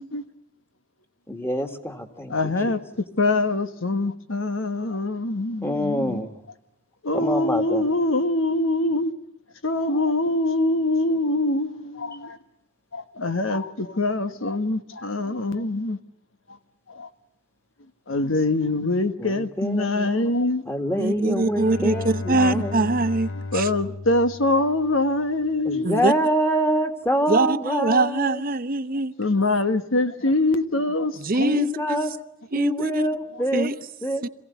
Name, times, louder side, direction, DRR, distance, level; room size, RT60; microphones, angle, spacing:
voice 1, 1.3-2.7 5.6-6.3 7.1-7.8 19.2-20.3 20.7-22.9 25.6-28.4 31.4-32.1 32.5-33.7 34.0-34.2, equal, 15° left, 2.0 m, -26 dB
voice 2, 2.3-2.8 3.2-6.2 7.0-9.1 9.6-12.4 12.9-16.0 16.9-17.1 18.1-20.6 23.5-26.0 29.2-31.5, left 2 dB, 90° left, 1.4 m, -24 dB
voice 3, 21.0-23.7 25.8-26.1 27.3-29.1 31.2-32.0 32.5-33.1 33.5-33.7 34.2-34.3, right 2 dB, 45° right, 0.8 m, -23 dB
Bowed string instrument, 21.1-25.2, left 2 dB, 70° left, 0.8 m, -34 dB
27.0 x 16.5 x 9.4 m
head